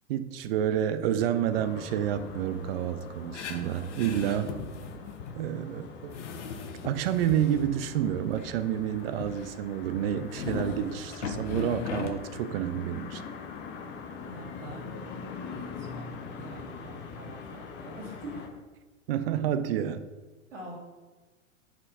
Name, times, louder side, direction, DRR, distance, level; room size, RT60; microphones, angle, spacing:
voice 1, 0.1-4.6 5.4-6.2 6.8-13.2 19.1-20.0, right 10 dB, 45° right, 12 dB, 0.6 m, -29 dB
sound 1, 1.5-18.5, left 5 dB, 25° left, 0.9 m, -43 dB
sound 2, 3.3-5.4 5.6-5.7 6.0-7.7 8.4-9.5 10.3-12.2, left 5 dB, 60° left, 1.1 m, -38 dB
voice 2, 14.3-15.0 15.5-18.5 20.5-20.8, right 1 dB, 65° right, -2 dB, 2.5 m, -44 dB
8.7 x 4.4 x 4.2 m, 1.3 s
figure-of-eight pair, 95°, 40 cm